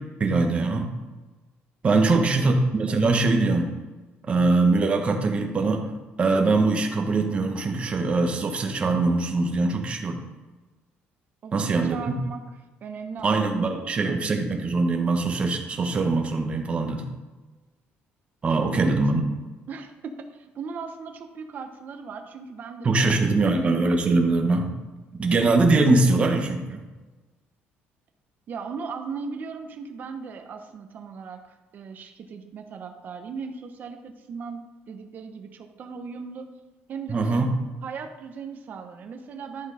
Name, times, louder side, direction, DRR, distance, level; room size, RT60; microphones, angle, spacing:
voice 1, 0.2-0.9 1.8-3.7 4.3-5.9 6.2-10.2 11.5-12.1 13.2-17.1 18.4-19.2 22.8-24.7 25.1-26.8 37.1-37.5, right 3 dB, 30° right, 3 dB, 1.3 m, -22 dB
voice 2, 2.0-2.5 11.4-12.4 12.8-14.2 18.6-19.1 19.7-23.1 23.4-23.8 28.5-31.4 31.7-36.5 36.9-37.4 37.8-39.7, right 5 dB, 45° right, 5 dB, 1.0 m, -38 dB
11.5 x 6.3 x 5.0 m, 1.2 s
cardioid pair, 150°, 4 cm